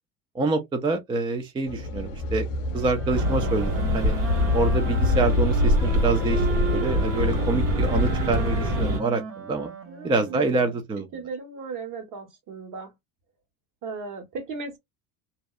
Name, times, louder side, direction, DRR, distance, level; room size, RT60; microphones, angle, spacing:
voice 1, 0.3-2.5 2.7-4.1 4.5-6.5 6.7-9.7 10.0-11.2, right 3 dB, 15° right, 0.3 m, -26 dB
sound 1, 1.7-7.5, left 2 dB, 65° left, 0.6 m, -30 dB
Wind instrument woodwind instrument, 2.7-10.8, right 5 dB, 35° right, 0.8 m, -36 dB
sound 2, 3.1-9.0, left 1 dB, 85° right, 1.4 m, -24 dB
voice 2, 9.9-10.5 11.1-12.9 13.8-14.8, right 4 dB, 50° right, 1.3 m, -36 dB
2.7 x 2.0 x 2.3 m
supercardioid pair, 100°, 39 cm